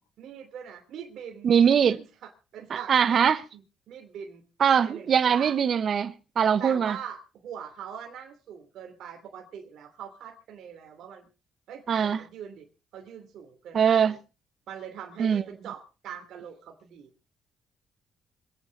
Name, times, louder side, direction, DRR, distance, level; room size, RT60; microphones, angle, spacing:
voice 1, 0.2-1.5 1.9-4.4 4.9-5.5 6.6-11.3 11.7-12.7 12.9-14.2 14.7-17.1, right 8 dB, 75° right, 3.0 m, -42 dB
voice 2, 1.4-2.0 2.7-3.4 4.6-7.0 11.9-12.2 13.7-14.2 15.2-15.4, right 7 dB, 55° right, 1.1 m, -22 dB
26.5 x 9.2 x 4.0 m
cardioid pair, 90°, 0 cm